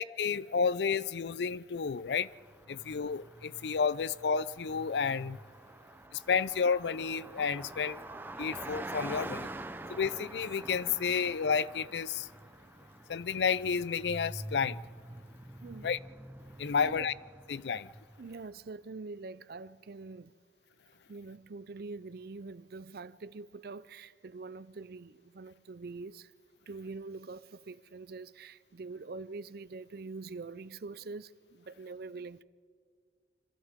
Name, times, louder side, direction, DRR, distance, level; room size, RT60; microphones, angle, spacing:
voice 1, 0.0-2.3 2.7-5.4 6.3-8.0 8.4-9.5 9.9-12.3 13.1-14.8 15.8-16.0 16.6-17.1 17.5-17.9, left 6 dB, 75° left, 0.5 m, -31 dB
Car passing by, 2.3-18.3, right 1 dB, 10° right, 0.6 m, -46 dB
voice 2, 15.6-15.9 16.8-17.1 17.7-17.9 18.2-20.3 21.1-26.3 26.7-32.4, right 3 dB, 60° right, 0.5 m, -44 dB
29.0 x 26.0 x 3.7 m
head